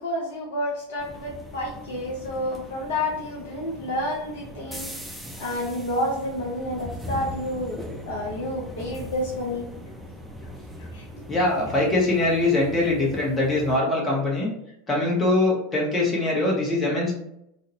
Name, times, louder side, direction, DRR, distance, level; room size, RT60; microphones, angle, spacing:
voice 1, 0.0-4.9 5.4-9.7 10.9-11.0, left 1 dB, 60° left, -2 dB, 0.5 m, -29 dB
sound 1, 1.0-13.8, equal, 5° right, 0.4 m, -40 dB
voice 2, 11.3-14.5 14.9-17.1, left 2 dB, 20° left, -4 dB, 1.0 m, -22 dB
2.5 x 2.1 x 2.8 m, 0.77 s
figure-of-eight pair, 85°, 0 cm